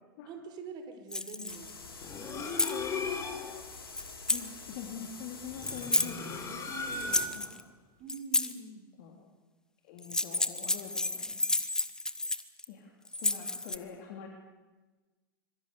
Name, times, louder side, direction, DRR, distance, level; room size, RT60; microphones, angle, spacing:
voice 1, 0.3-1.8 7.4-7.5 8.0-8.8, right 4 dB, 35° right, 7 dB, 4.7 m, -44 dB
sound 1, 1.1-1.7 2.3-2.8 4.0-4.5 5.6-6.1 6.9-7.6 8.1-8.5 10.0-12.6 13.1-13.8, left 2 dB, 5° left, 1.4 m, -31 dB
sound 2, 1.5-7.3, left 4 dB, 80° left, 3.6 m, -47 dB
sound 3, 2.0-3.6 5.5-7.5, left 3 dB, 25° left, 4.0 m, -37 dB
voice 2, 2.3-3.6 4.3-7.1 7.3-7.5 9.0-9.3 9.8-11.4 12.7-14.3, left 7 dB, 50° left, 1 dB, 3.4 m, -45 dB
25.5 x 23.5 x 6.9 m, 1.2 s
figure-of-eight pair, 95°, 12 cm